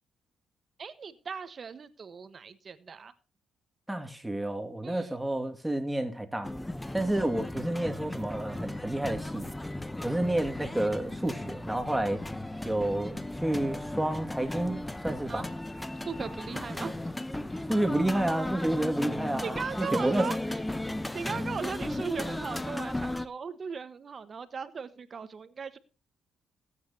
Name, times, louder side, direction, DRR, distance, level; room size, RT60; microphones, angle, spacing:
voice 1, 0.8-3.1 4.8-5.2 15.3-15.4 16.1-16.9 19.4-20.6 21.1-25.8, right 5 dB, 45° right, 1.2 m, -37 dB
voice 2, 3.9-6.5 6.9-9.5 10.0-12.2 12.6-15.5 17.7-20.3, right 1 dB, 5° right, 2.1 m, -30 dB
sound 1, 6.4-23.3, left 1 dB, 10° left, 0.9 m, -36 dB
18.0 x 9.1 x 2.8 m
cardioid pair, 90°, 0 cm